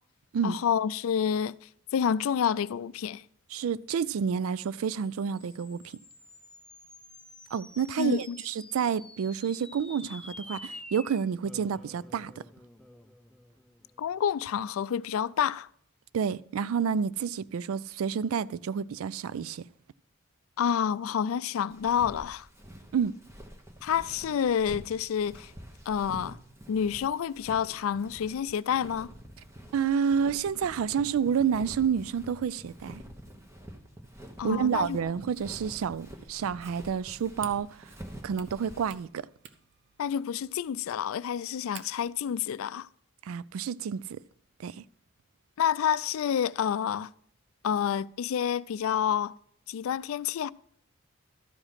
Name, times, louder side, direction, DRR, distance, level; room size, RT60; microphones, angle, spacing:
voice 1, 0.4-3.2 8.0-8.4 14.0-15.7 20.6-22.5 23.8-25.5 25.9-26.4 26.7-29.1 34.4-35.0 40.0-42.9 45.6-47.1 47.6-49.3 49.7-50.5, left 8 dB, 85° left, 0.3 m, -28 dB
voice 2, 3.5-5.8 7.5-12.4 16.1-19.7 22.9-23.2 29.7-33.0 34.4-37.9 38.2-39.3 43.2-44.2 44.6-44.8, right 7 dB, 85° right, 0.3 m, -29 dB
sound 1, 4.0-14.6, left 2 dB, 5° left, 0.4 m, -50 dB
Walk footsteps, 21.7-39.0, right 1 dB, 15° right, 1.0 m, -48 dB
sound 2, 36.8-42.2, right 8 dB, 55° right, 0.7 m, -52 dB
12.5 x 5.0 x 5.6 m
head